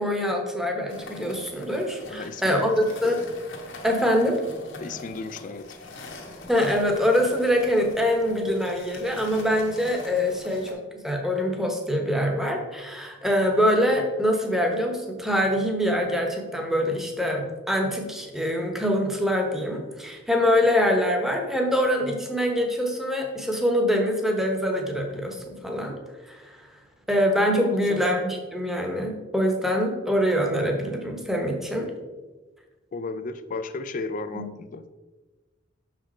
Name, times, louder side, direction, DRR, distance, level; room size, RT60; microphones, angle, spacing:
voice 1, 0.0-3.2 3.8-4.4 6.5-26.0 26.3-26.7 27.1-31.9 34.3-34.4, equal, ahead, 2 dB, 1.0 m, -24 dB
sound 1, 0.9-10.7, left 2 dB, 80° left, 1.2 m, -43 dB
voice 2, 2.1-2.8 4.8-5.8 27.9-28.0 32.9-34.8, left 3 dB, 40° left, 11 dB, 0.4 m, -34 dB
6.4 x 5.0 x 4.3 m, 1.2 s
head